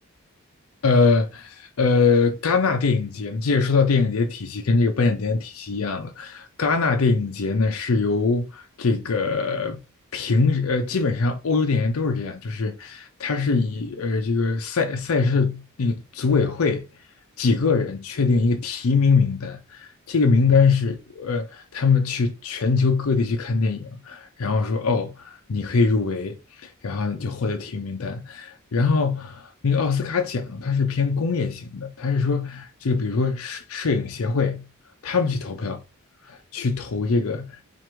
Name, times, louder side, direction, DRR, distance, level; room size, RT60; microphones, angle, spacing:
voice 1, 0.8-9.8 10.1-16.8 17.4-34.6 35.0-35.8 36.3-37.6, left 4 dB, 65° left, 0.5 m, -23 dB
4.5 x 2.5 x 3.0 m
head